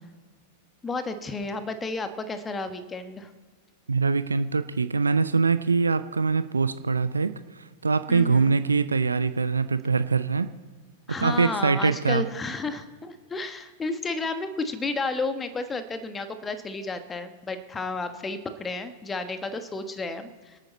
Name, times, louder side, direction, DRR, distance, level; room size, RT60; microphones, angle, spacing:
voice 1, 0.8-3.3 8.1-8.6 11.1-20.6, left 3 dB, 15° left, 9 dB, 1.3 m, -32 dB
voice 2, 3.9-10.5 11.2-12.2, right 4 dB, 85° right, 12 dB, 0.5 m, -23 dB
27.0 x 9.0 x 4.2 m, 1.5 s
figure-of-eight pair, 95°, 0 cm